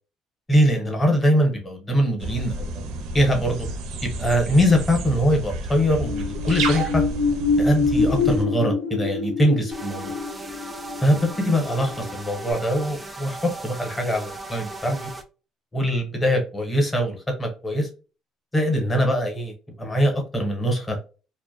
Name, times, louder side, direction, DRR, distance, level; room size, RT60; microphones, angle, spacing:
voice 1, 0.5-3.7 4.0-7.0 7.6-10.1 11.0-15.1 15.7-17.9 18.5-19.5 19.8-21.0, equal, 15° left, 0.7 m, -22 dB
sound 1, 2.2-8.4, right 2 dB, 80° right, 0.5 m, -30 dB
sound 2, 5.8-12.1 12.5-12.6, left 4 dB, 80° left, 0.5 m, -25 dB
sound 3, 9.7-15.2, right 2 dB, 10° right, 0.3 m, -37 dB
2.4 x 2.1 x 2.5 m
cardioid pair, 160°, 0 cm